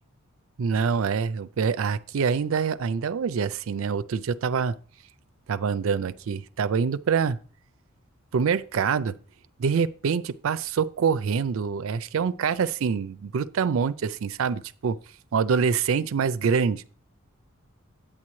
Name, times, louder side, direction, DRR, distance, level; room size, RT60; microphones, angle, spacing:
voice 1, 0.6-4.7 5.5-7.4 8.3-9.1 9.6-15.0 15.3-16.8, right 6 dB, 70° right, 0.4 m, -25 dB
8.8 x 8.6 x 3.1 m
head